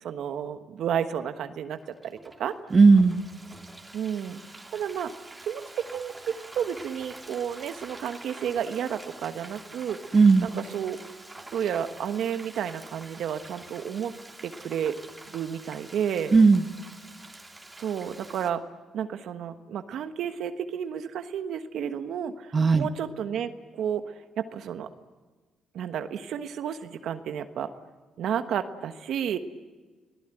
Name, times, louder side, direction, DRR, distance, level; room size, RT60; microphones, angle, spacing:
voice 1, 0.0-1.8 2.0-2.5 3.9-4.4 4.7-5.1 5.4-10.0 10.4-11.0 11.5-14.1 14.4-15.0 15.3-16.3 17.8-18.6 18.9-24.9 25.7-27.7 28.2-29.4, right 8 dB, 75° right, 9 dB, 1.3 m, -31 dB
Frying (food), 1.8-18.5, right 2 dB, 15° right, 2.7 m, -46 dB
voice 2, 2.7-3.2 10.1-10.5 16.3-16.6 22.5-22.9, right 4 dB, 35° right, 9 dB, 1.1 m, -16 dB
26.5 x 18.0 x 9.1 m, 1.3 s
cardioid pair, 90°, 0 cm